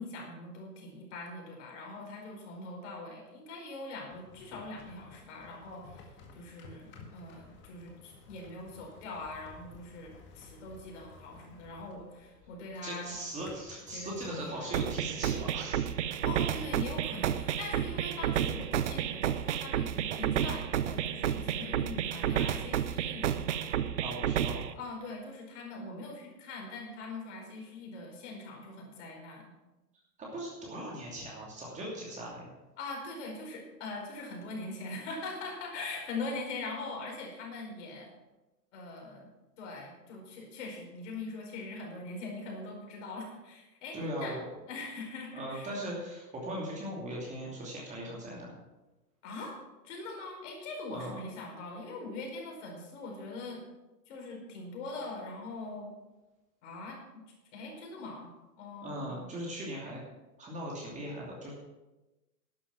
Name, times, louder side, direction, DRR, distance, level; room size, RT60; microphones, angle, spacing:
voice 1, 0.0-13.1 13.9-14.7 16.2-23.9 24.7-29.5 32.8-38.1 38.7-39.3 39.6-44.3 44.7-45.7 49.2-49.6 49.8-53.6 54.1-55.9 56.6-57.0 57.5-58.3 58.6-59.3, left 2 dB, 45° left, 0 dB, 4.9 m, -42 dB
sound 1, 4.1-18.0, left 3 dB, 20° left, 1.8 m, -54 dB
voice 2, 12.8-15.8 24.0-24.7 30.2-32.5 43.9-44.5 45.3-48.5 50.9-51.2 58.8-60.0 60.4-61.5, right 1 dB, 15° right, -3 dB, 2.7 m, -39 dB
sound 2, 14.7-24.7, right 10 dB, 45° right, 0.8 m, -31 dB
12.0 x 10.0 x 6.0 m, 1.1 s
figure-of-eight pair, 115°, 50 cm